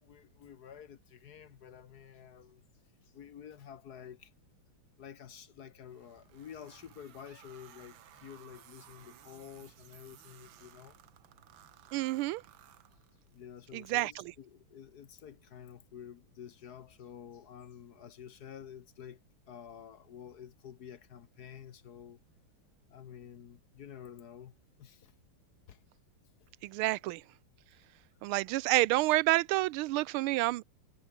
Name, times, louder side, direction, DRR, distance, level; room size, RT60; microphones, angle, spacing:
voice 1, 0.0-2.6 3.0-4.3 5.0-11.0 13.3-19.2 19.5-22.2 22.9-25.1 25.7-25.8, left 9 dB, 55° left, 1.3 m, -50 dB
sound 1, 5.9-13.4, right 11 dB, 70° right, 1.8 m, -58 dB
voice 2, 11.9-12.4 13.7-14.3 26.6-27.2 28.2-30.6, right 18 dB, 90° right, 1.5 m, -29 dB
omnidirectional pair, 2.3 m